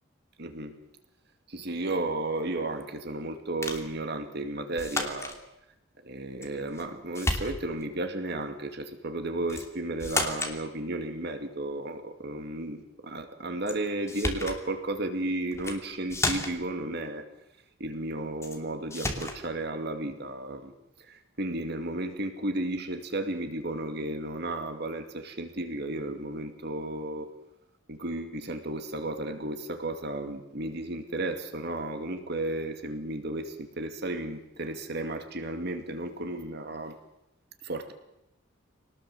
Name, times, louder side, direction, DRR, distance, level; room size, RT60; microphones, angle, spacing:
voice 1, 0.4-0.7 1.5-5.4 6.0-17.2 17.8-20.7 21.0-27.3 27.9-37.0 37.6-37.9, right 2 dB, 55° right, 7 dB, 2.4 m, -33 dB
sound 1, 3.6-3.9 4.8-5.4 6.4-6.9 7.1-7.8 9.5-9.7 10.0-10.6 13.7-13.8 14.1-14.6 15.5-15.8 16.1-16.7 18.4-18.6 18.9-19.4, left 2 dB, 15° left, 2.9 m, -32 dB
25.5 x 19.0 x 7.8 m, 0.89 s
head